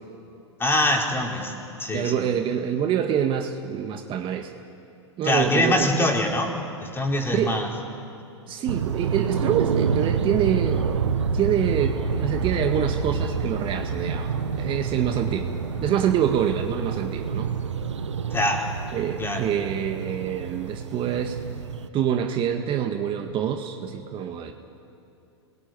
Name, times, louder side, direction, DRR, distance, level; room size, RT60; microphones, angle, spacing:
voice 1, 0.6-1.5 1.8-2.1 5.2-7.7 18.3-18.7 19.2-19.4, left 1 dB, 15° left, 0 dB, 4.7 m, -24 dB
voice 2, 1.9-4.5 5.2-6.1 7.3-7.6 8.5-10.9 11.3-14.3 14.6-15.5 15.8-17.5 18.9-21.4 21.9-24.5, right 9 dB, 35° right, 5 dB, 1.8 m, -26 dB
sound 1, 8.7-21.9, right 6 dB, 85° right, 1.2 m, -28 dB
sound 2, 10.2-15.9, left 5 dB, 45° left, 6.3 m, -37 dB
28.5 x 21.5 x 9.6 m, 2.6 s
hypercardioid pair, 105°, 15 cm